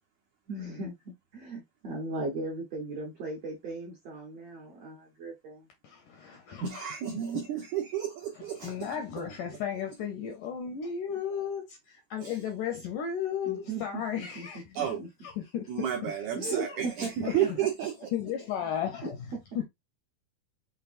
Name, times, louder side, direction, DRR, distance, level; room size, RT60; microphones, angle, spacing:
voice 1, 0.5-5.7 13.4-15.1 16.3-17.9 19.0-19.4, right 3 dB, 65° right, 1.6 m, -37 dB
voice 2, 5.8-6.8 7.1-7.2 8.6-11.6 12.1-15.0 15.2-15.6 16.1-16.2 17.2-17.6 18.1-19.2 19.5-19.6, left 8 dB, 80° left, 1.8 m, -34 dB
voice 3, 6.6-8.9 12.2-12.4 14.7-15.0 15.7-17.9, right 9 dB, 85° right, 1.7 m, -31 dB
5.8 x 3.5 x 2.5 m
omnidirectional pair, 4.4 m